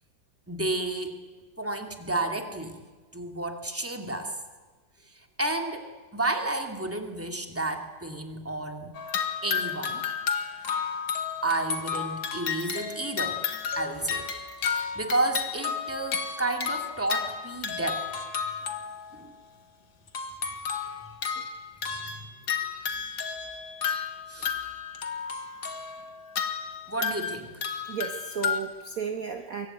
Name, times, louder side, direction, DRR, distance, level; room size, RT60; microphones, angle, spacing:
voice 1, 0.5-1.2 1.6-2.8 3.1-4.4 5.0-8.9 9.4-10.1 11.4-13.4 13.7-14.3 14.6-18.1 19.1-19.3 22.0-22.1 24.3-24.5 26.9-27.6, right 2 dB, 5° right, 4 dB, 2.5 m, -31 dB
sound 1, 8.9-19.2 20.1-28.6, left 6 dB, 75° left, 2.5 m, -32 dB
voice 2, 27.9-29.7, right 6 dB, 45° right, 5 dB, 1.6 m, -34 dB
25.5 x 23.0 x 9.3 m, 1.3 s
omnidirectional pair, 2.2 m